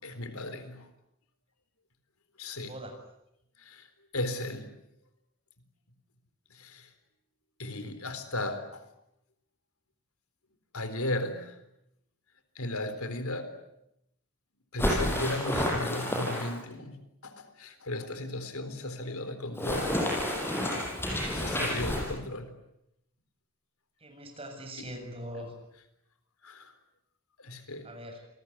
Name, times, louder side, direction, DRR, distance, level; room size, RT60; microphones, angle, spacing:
voice 1, 0.0-0.9 2.4-2.7 3.7-3.8 4.1-4.7 6.5-6.9 7.6-8.8 10.7-11.5 12.6-13.5 14.7-20.0 21.3-22.5 24.8-24.9 26.4-26.7 27.4-27.9, left 1 dB, 85° left, 10 dB, 4.0 m, -35 dB
voice 2, 2.6-2.9 24.0-25.5 27.8-28.2, equal, 25° right, 4 dB, 7.3 m, -42 dB
sound 1, 14.8-16.7 19.6-22.1, left 1 dB, 10° left, 7.2 m, -30 dB
28.0 x 21.0 x 9.8 m, 0.80 s
head